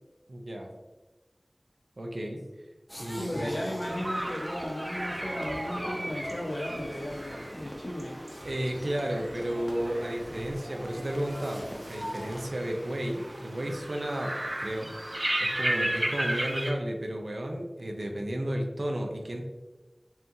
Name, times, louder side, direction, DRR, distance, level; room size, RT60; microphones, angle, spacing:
voice 1, 0.3-0.7 2.0-2.4 3.0-3.6 8.4-14.3 14.6-19.4, right 1 dB, 75° right, 2 dB, 0.6 m, -33 dB
sound 1, 2.9-12.5, equal, 15° left, 0.8 m, -41 dB
voice 2, 3.1-8.2, left 1 dB, 65° left, -2 dB, 1.0 m, -35 dB
sound 2, 3.8-16.7, right 1 dB, 45° right, 0.8 m, -35 dB
5.5 x 2.9 x 2.7 m, 1.1 s
wide cardioid pair, 45°, 0 cm